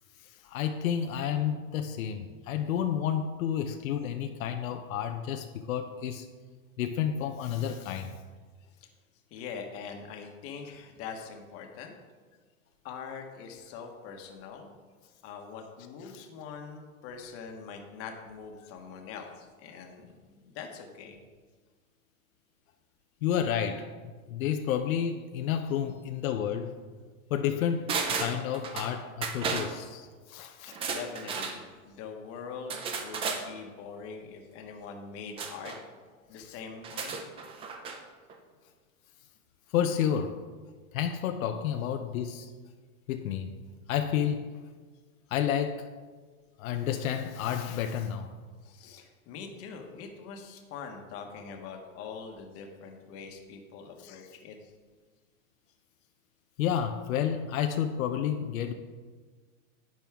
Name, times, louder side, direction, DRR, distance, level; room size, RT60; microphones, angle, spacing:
voice 1, 0.2-6.3 6.8-8.1 23.2-26.8 27.3-30.9 39.7-40.4 40.9-42.5 43.1-43.6 43.9-44.5 45.3-45.9 46.6-48.3 54.0-54.3 56.6-58.7, left 9 dB, 70° left, 0.9 m, -30 dB
voice 2, 9.3-11.9 12.8-14.7 15.2-21.2 25.9-26.0 30.9-35.7 36.3-37.2 43.9-44.0 48.6-54.7, left 6 dB, 35° left, 1.3 m, -43 dB
sound 1, 27.9-28.9 29.2-29.7 30.7-31.6 32.7-33.4 35.4-35.8 36.8-38.0 38.3-38.4, right 5 dB, 15° right, 0.5 m, -33 dB
10.5 x 8.9 x 3.6 m
supercardioid pair, 150°, 42 cm